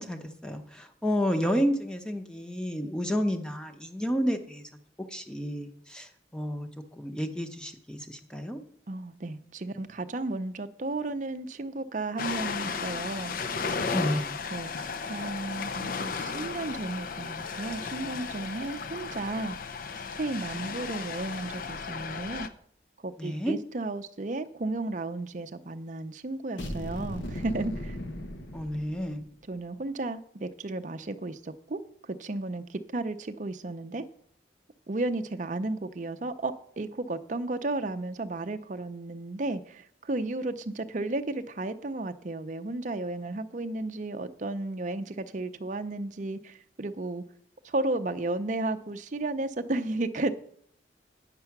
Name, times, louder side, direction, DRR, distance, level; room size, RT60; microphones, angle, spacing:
voice 1, 0.0-4.6 5.1-6.7 7.0-8.6 13.9-14.3 23.2-23.5 28.5-29.2, equal, 5° left, 0.8 m, -30 dB
voice 2, 8.9-13.3 14.5-19.6 20.2-22.5 23.0-28.0 29.5-31.8 32.1-34.0 34.9-47.2 47.6-50.3, right 2 dB, 45° right, 0.6 m, -33 dB
Ocean, 12.2-22.5, left 5 dB, 50° left, 0.6 m, -35 dB
sound 1, 26.6-29.3, left 1 dB, 85° left, 1.1 m, -37 dB
9.6 x 6.8 x 5.9 m
head